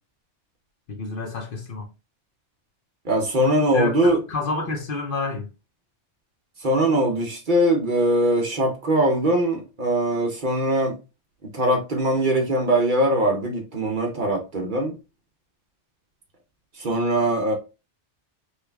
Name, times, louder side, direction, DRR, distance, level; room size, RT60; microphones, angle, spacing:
voice 1, 0.9-1.9 3.7-5.5, left 3 dB, 55° left, 0.8 m, -29 dB
voice 2, 3.0-4.2 6.6-10.9 11.5-14.9 16.7-17.5, right 1 dB, 50° right, 0.8 m, -21 dB
3.2 x 2.4 x 3.3 m
omnidirectional pair, 1.2 m